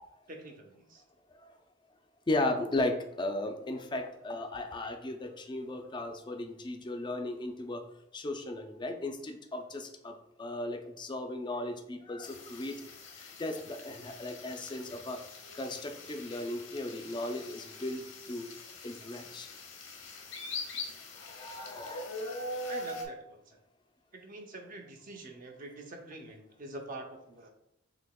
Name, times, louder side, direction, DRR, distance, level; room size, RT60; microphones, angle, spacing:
voice 1, 0.3-1.0 22.7-23.6 24.1-27.5, right 1 dB, 45° right, 3 dB, 0.7 m, -46 dB
voice 2, 2.3-7.8 8.1-12.8 13.4-15.2 15.5-18.5 18.8-19.5 21.3-22.1, left 2 dB, 25° left, 5 dB, 0.4 m, -36 dB
sound 1, 12.2-23.1, left 2 dB, 85° left, 0.9 m, -43 dB
6.2 x 2.8 x 2.3 m, 0.83 s
head